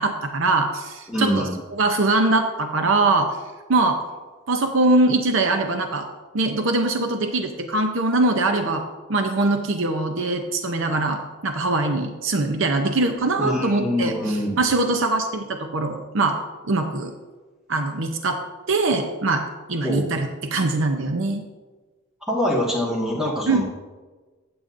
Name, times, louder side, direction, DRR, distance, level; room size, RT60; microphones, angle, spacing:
voice 1, 0.0-1.5 1.8-3.4 3.7-4.0 4.5-6.1 6.3-8.8 9.1-16.4 16.7-17.1 17.7-18.4 18.7-19.4 19.7-21.4 23.5-23.6, right 2 dB, 65° right, 5 dB, 0.7 m, -22 dB
voice 2, 1.1-1.5 13.4-14.6 19.8-20.0 22.3-23.6, equal, ahead, -5 dB, 1.8 m, -24 dB
15.5 x 8.7 x 2.6 m, 1.3 s
head